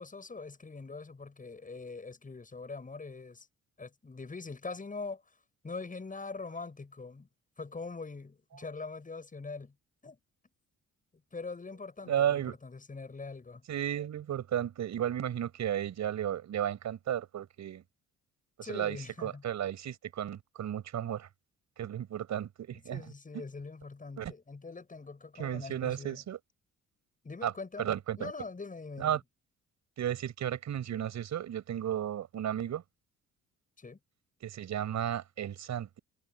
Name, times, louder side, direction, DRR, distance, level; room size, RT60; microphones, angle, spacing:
voice 1, 0.0-3.5 3.8-5.2 5.6-7.3 7.6-9.7 10.0-10.2 11.3-13.6 18.6-19.4 22.9-26.2 27.2-29.2 33.8-34.0, left 4 dB, 25° left, 7.9 m, -43 dB
voice 2, 12.0-12.6 13.7-17.8 18.6-21.3 21.8-23.0 24.2-24.3 25.4-26.4 27.4-27.5 27.8-28.3 29.0-29.2 30.0-32.8 34.4-36.0, right 10 dB, 65° right, 6.5 m, -33 dB
cardioid pair, 90°, 30 cm